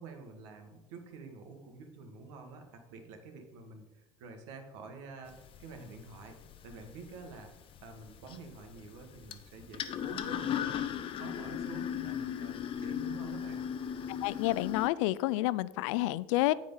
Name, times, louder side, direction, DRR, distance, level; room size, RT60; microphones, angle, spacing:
voice 1, 0.0-6.4 6.6-13.6, right 4 dB, 80° right, 4 dB, 1.7 m, -48 dB
sound 1, 5.3-14.9, left 9 dB, 35° left, 0.7 m, -38 dB
voice 2, 14.1-16.5, left 17 dB, 85° left, 19 dB, 0.4 m, -29 dB
9.6 x 4.9 x 5.5 m, 1.0 s
supercardioid pair, 130°, 15 cm